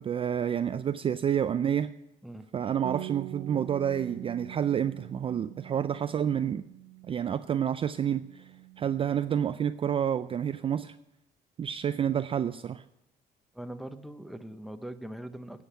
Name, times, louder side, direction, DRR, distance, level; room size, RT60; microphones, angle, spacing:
voice 1, 0.0-1.9 2.5-6.6 7.1-8.5 8.8-11.0 11.6-12.8, right 9 dB, 35° right, 11 dB, 0.3 m, -29 dB
voice 2, 2.2-2.6 13.5-15.6, right 1 dB, ahead, 9 dB, 0.8 m, -41 dB
Bass guitar, 2.8-7.5 7.8-9.1, right 18 dB, 90° right, 0.6 m, -44 dB
10.5 x 7.5 x 9.0 m, 0.88 s
cardioid pair, 110°, 17 cm